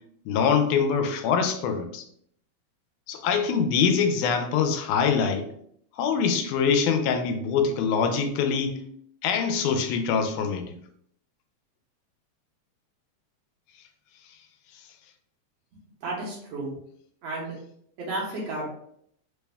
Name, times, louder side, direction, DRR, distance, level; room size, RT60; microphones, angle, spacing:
voice 1, 0.3-2.0 3.1-5.5 6.0-8.8 9.2-10.8, left 6 dB, 85° left, 6 dB, 2.0 m, -24 dB
voice 2, 16.0-16.7 17.2-17.6 18.0-18.6, right 2 dB, 65° right, -4 dB, 1.9 m, -32 dB
4.9 x 2.1 x 3.3 m, 0.67 s
omnidirectional pair, 3.5 m